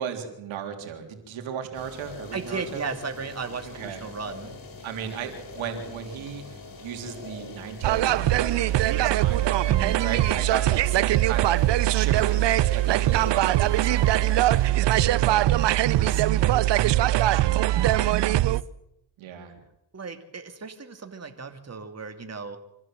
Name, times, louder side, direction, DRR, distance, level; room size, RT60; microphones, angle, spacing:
voice 1, 0.0-2.9 3.6-4.0 4.8-9.5 10.0-11.6 11.9-12.4 12.7-18.4 19.2-19.6, right 8 dB, 90° right, 4 dB, 3.6 m, -36 dB
sound 1, 1.7-14.7, left 3 dB, 45° left, 7.4 m, -42 dB
voice 2, 2.3-4.6 9.7-10.0 17.8-18.5 19.9-22.6, right 5 dB, 35° right, 6 dB, 2.7 m, -36 dB
sound 2, 7.8-18.6, right 14 dB, 65° right, 0.7 m, -21 dB
26.5 x 15.0 x 7.7 m, 0.84 s
cardioid pair, 75°, 46 cm